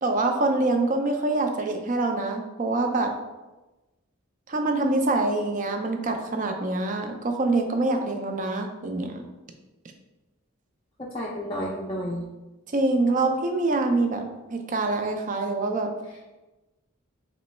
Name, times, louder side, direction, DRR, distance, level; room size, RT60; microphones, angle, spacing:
voice 1, 0.0-3.1 4.5-9.3 12.7-14.2 14.5-15.9, right 2 dB, 40° right, 4 dB, 0.4 m, -25 dB
voice 2, 11.0-12.3, equal, 25° left, -5 dB, 0.4 m, -31 dB
3.1 x 3.0 x 4.2 m, 1.1 s
head